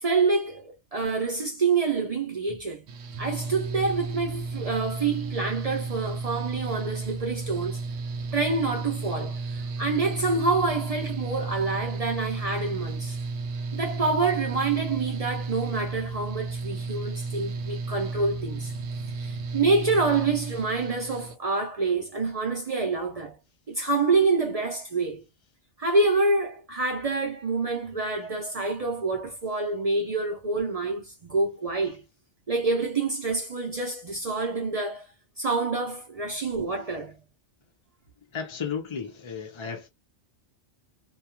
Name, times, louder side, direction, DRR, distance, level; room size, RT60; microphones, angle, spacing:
voice 1, 0.0-2.9 3.2-7.8 8.3-13.2 13.7-18.7 19.2-23.4 23.7-25.3 25.8-32.0 32.5-35.1 35.4-37.2, right 3 dB, 45° right, 0.5 m, -27 dB
Mechanical fan, 2.9-21.4, right 3 dB, 80° right, 1.0 m, -33 dB
voice 2, 38.3-39.9, left 6 dB, 50° left, 0.3 m, -34 dB
2.3 x 2.2 x 2.8 m
omnidirectional pair, 1.3 m